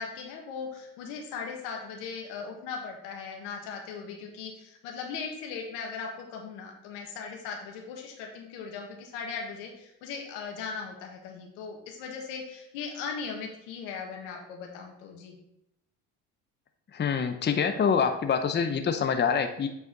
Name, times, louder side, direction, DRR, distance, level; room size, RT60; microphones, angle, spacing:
voice 1, 0.0-15.4, left 5 dB, 85° left, 1 dB, 1.7 m, -38 dB
voice 2, 16.9-19.7, left 6 dB, 30° left, 7 dB, 0.8 m, -26 dB
8.1 x 4.8 x 3.9 m, 0.82 s
supercardioid pair, 75°, 37 cm